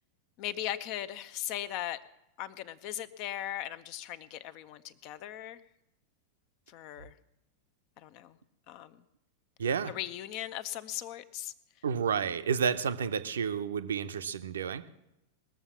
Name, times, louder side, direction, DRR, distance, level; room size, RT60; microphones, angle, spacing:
voice 1, 0.4-2.0 2.4-5.6 6.7-7.2 8.0-8.4 8.7-9.0 9.9-11.5, left 12 dB, 45° left, 14 dB, 0.6 m, -38 dB
voice 2, 9.6-9.9 11.8-14.9, right 6 dB, 65° right, 12 dB, 0.6 m, -30 dB
20.0 x 7.2 x 7.2 m, 0.88 s
figure-of-eight pair, 90°, 0 cm